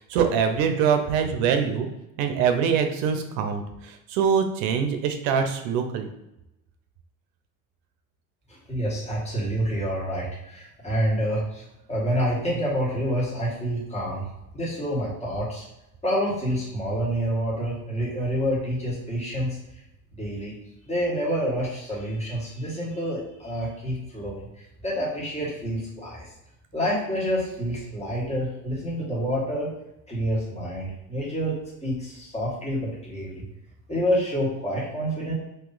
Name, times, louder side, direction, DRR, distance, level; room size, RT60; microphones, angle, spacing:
voice 1, 0.0-1.9 2.2-6.1, right 7 dB, 80° right, 7 dB, 0.7 m, -24 dB
voice 2, 8.5-11.6 11.9-14.3 14.5-15.6 16.0-19.5 20.1-20.5 20.8-24.5 24.8-26.3 26.7-29.7 30.1-31.6 31.8-33.4 33.9-35.3, equal, 15° left, -7 dB, 1.5 m, -28 dB
2.9 x 2.8 x 3.9 m, 0.88 s
supercardioid pair, 120°, 40 cm